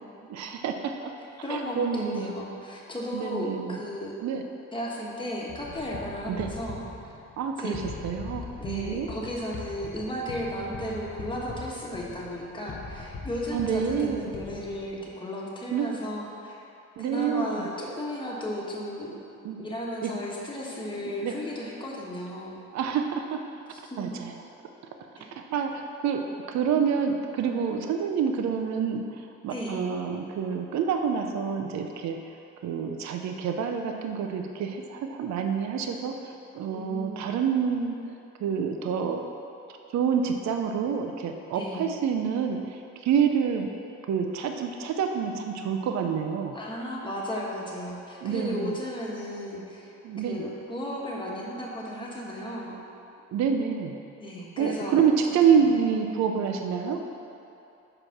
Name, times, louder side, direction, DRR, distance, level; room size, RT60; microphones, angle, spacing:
voice 1, 0.3-1.1 1.5-2.4 3.1-3.8 4.2-4.4 6.3-6.5 7.4-9.1 13.5-14.3 15.7-15.9 17.0-17.7 19.4-19.6 20.0-20.1 21.2-21.3 22.7-23.4 24.0-24.4 25.3-32.4 32.6-37.9 38.4-39.3 39.9-43.8 44.1-46.5 48.2-48.8 50.0-50.5 53.3-54.0 54.6-57.0, right 7 dB, 65° right, 4 dB, 0.6 m, -27 dB
voice 2, 1.4-4.2 4.7-6.8 7.6-7.8 8.6-16.6 17.0-19.2 19.6-22.7 23.7-24.1 25.2-25.3 29.5-29.8 36.7-37.3 41.5-41.9 46.5-49.9 50.3-52.8 54.2-55.0 55.3-55.7, equal, 15° left, -4 dB, 1.3 m, -35 dB
sound 1, 5.5-15.0, left 3 dB, 40° left, 0.8 m, -41 dB
4.9 x 4.8 x 5.8 m, 2.7 s
cardioid pair, 90°, 30 cm